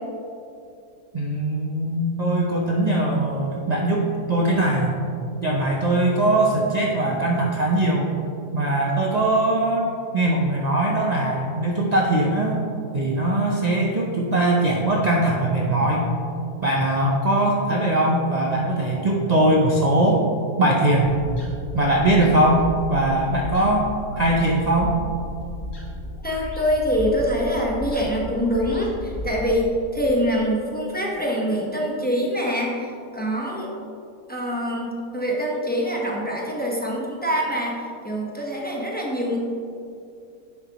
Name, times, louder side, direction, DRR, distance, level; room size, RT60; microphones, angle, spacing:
voice 1, 1.1-4.9 5.4-8.1 8.5-9.9 10.1-12.6 12.9-16.1 16.6-20.2 20.6-21.1 21.7-25.0, right 1 dB, 55° right, -2 dB, 0.4 m, -21 dB
sound 1, 21.0-29.7, left 1 dB, 60° left, 2.1 m, -35 dB
voice 2, 26.2-33.7 34.3-39.4, equal, 5° left, -3 dB, 0.9 m, -25 dB
9.9 x 7.3 x 3.0 m, 2.6 s
omnidirectional pair, 1.7 m